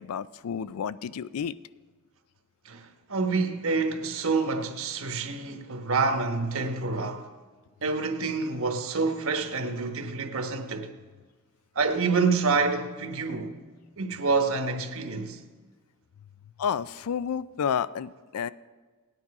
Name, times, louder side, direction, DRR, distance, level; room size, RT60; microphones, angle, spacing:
voice 1, 0.0-1.6 16.6-18.5, left 7 dB, 80° left, 0.4 m, -30 dB
voice 2, 2.6-7.3 7.8-10.9 11.7-13.5 14.0-15.4, right 4 dB, 65° right, 1.2 m, -27 dB
18.0 x 9.7 x 4.8 m
head